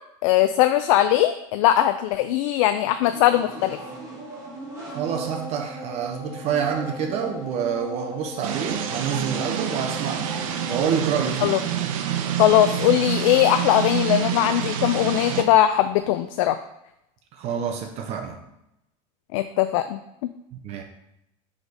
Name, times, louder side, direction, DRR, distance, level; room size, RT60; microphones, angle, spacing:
voice 1, 0.2-3.8 11.4-11.6 12.3-16.6 19.3-20.3, left 12 dB, 70° left, 9 dB, 0.4 m, -20 dB
sound 1, 3.0-10.8, equal, 20° right, 1.9 m, -38 dB
voice 2, 4.9-10.3 10.7-11.5 17.3-18.4 20.6-20.8, right 7 dB, 40° right, 4 dB, 0.7 m, -27 dB
sound 2, 8.4-15.4, right 9 dB, 90° right, 0.7 m, -27 dB
5.0 x 4.1 x 4.7 m, 0.84 s
supercardioid pair, 155°, 17 cm